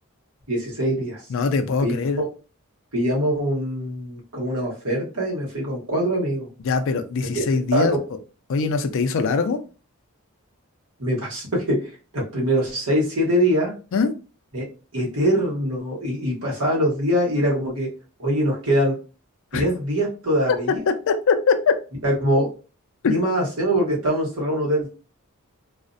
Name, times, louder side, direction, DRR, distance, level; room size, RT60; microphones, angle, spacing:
voice 1, 0.5-1.2 1.8-2.3 2.9-6.5 7.7-8.0 11.0-13.7 14.5-14.7 14.9-17.9 18.2-19.0 19.5-20.8 22.0-22.5 23.1-24.9, equal, 80° right, -3 dB, 1.1 m, -23 dB
voice 2, 1.3-2.2 6.6-8.0 8.5-9.6 13.9-14.1 19.5-19.7 20.5-20.6 20.9-21.8 23.0-23.1, left 4 dB, 65° left, 9 dB, 0.4 m, -22 dB
2.4 x 2.1 x 2.5 m, 0.34 s
head